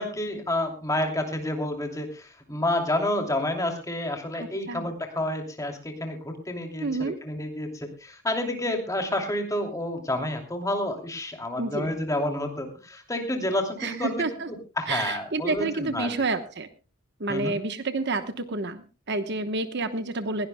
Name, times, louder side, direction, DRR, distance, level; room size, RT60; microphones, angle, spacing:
voice 1, 0.0-14.2 14.8-16.1 17.3-17.6, left 1 dB, 15° left, 3 dB, 2.8 m, -29 dB
voice 2, 4.3-4.9 6.8-7.1 11.6-11.9 13.8-14.5 14.9-16.7 17.2-20.5, right 3 dB, 50° right, 10 dB, 1.1 m, -29 dB
20.5 x 17.5 x 2.2 m, 0.32 s
head